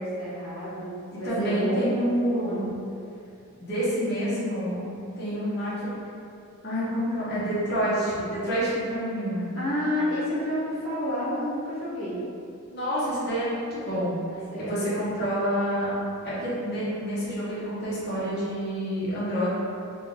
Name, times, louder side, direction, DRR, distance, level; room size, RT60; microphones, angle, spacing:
voice 1, 0.0-2.0 2.2-2.7 5.3-5.6 9.5-12.2 14.5-14.9, equal, 75° left, -9 dB, 1.0 m, -30 dB
voice 2, 1.2-2.7 3.6-4.8 5.2-5.9 6.6-9.6 12.7-15.9 16.2-19.5, equal, 45° left, -10 dB, 1.0 m, -28 dB
3.8 x 2.3 x 3.5 m, 2.6 s
head